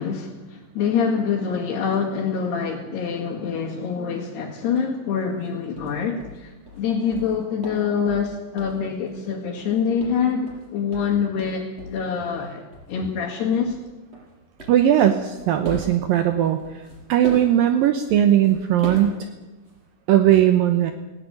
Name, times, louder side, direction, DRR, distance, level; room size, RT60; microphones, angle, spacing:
voice 1, 0.0-13.8, left 6 dB, 85° left, -3 dB, 4.5 m, -25 dB
sound 1, 5.4-5.5 5.8-9.3 9.6-12.0 12.3-12.5 12.7-12.9 13.2-19.9, equal, 15° right, 6.9 m, -39 dB
voice 2, 14.7-16.8 17.1-19.2 20.1-20.9, right 11 dB, 70° right, 8 dB, 2.5 m, -18 dB
18.5 x 17.5 x 9.2 m, 1.1 s
omnidirectional pair, 4.6 m